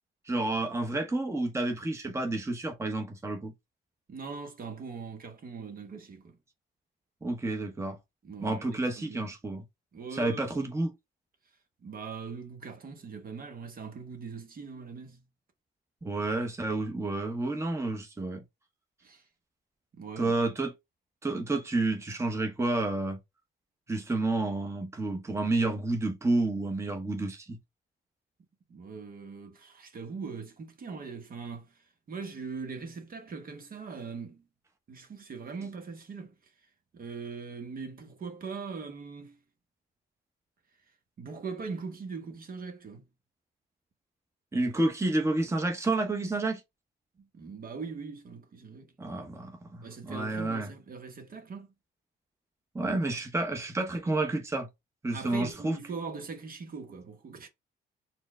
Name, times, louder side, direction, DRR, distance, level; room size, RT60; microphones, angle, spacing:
voice 1, 0.3-3.5 7.2-8.0 8.4-9.6 10.1-10.9 16.0-18.4 20.2-20.7 21.2-23.2 23.9-27.6 44.5-46.6 49.0-50.7 52.7-54.7 55.0-55.8, right 2 dB, 15° right, 0.8 m, -30 dB
voice 2, 4.1-6.4 8.2-8.7 9.0-9.3 9.9-10.7 11.8-15.2 19.0-19.2 19.9-20.3 28.7-34.5 34.9-36.5 36.9-39.4 41.2-43.0 47.2-48.9 49.8-51.7 55.1-57.5, right 5 dB, 45° right, 1.0 m, -41 dB
4.4 x 2.1 x 3.5 m
cardioid pair, 90°, 20 cm